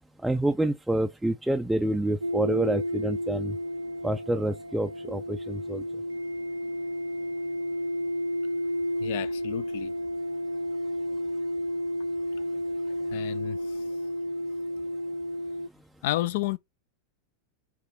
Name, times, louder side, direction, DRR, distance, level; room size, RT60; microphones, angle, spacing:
voice 1, 0.2-3.6 4.0-5.8, right 1 dB, 5° right, 0.5 m, -27 dB
sound 1, 2.2-15.7, equal, 80° right, 0.4 m, -32 dB
voice 2, 9.0-9.9 13.1-13.6 16.0-16.6, left 15 dB, 55° left, 0.6 m, -31 dB
5.9 x 3.9 x 4.4 m
figure-of-eight pair, 90°, 0 cm